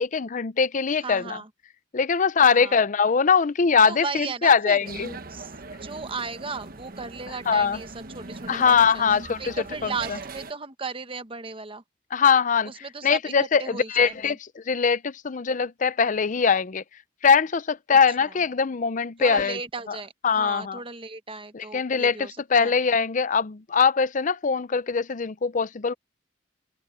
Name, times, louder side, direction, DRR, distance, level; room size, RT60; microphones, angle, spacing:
voice 1, 0.0-1.4 1.9-5.1 7.5-7.8 8.5-9.5 9.8-9.9 12.1-12.7 13.0-16.8 17.2-19.6 20.2-20.8 21.5-25.9, left 6 dB, 45° left, 0.6 m, -22 dB
voice 2, 1.0-1.5 2.5-2.8 3.9-4.9 5.3-5.5 5.8-11.8 12.6-13.3 13.6-14.4 18.2-18.4 19.2-22.7, right 4 dB, 30° right, 1.1 m, -36 dB
sound 1, 4.9-10.5, right 3 dB, 55° right, 1.2 m, -40 dB
open air
head